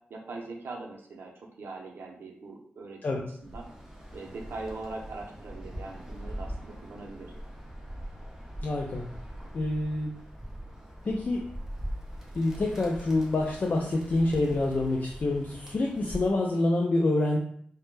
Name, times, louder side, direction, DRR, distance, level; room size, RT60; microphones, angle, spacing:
voice 1, 0.1-1.3 1.6-3.7 4.1-7.3, right 3 dB, 75° right, -1 dB, 0.5 m, -41 dB
Bird, 3.4-16.5, equal, 10° right, 0.6 m, -42 dB
voice 2, 8.6-9.0 9.5-10.1 11.0-11.4 12.3-17.4, left 2 dB, 50° left, -1 dB, 0.3 m, -27 dB
2.1 x 2.1 x 3.0 m, 0.63 s
cardioid pair, 70°, 4 cm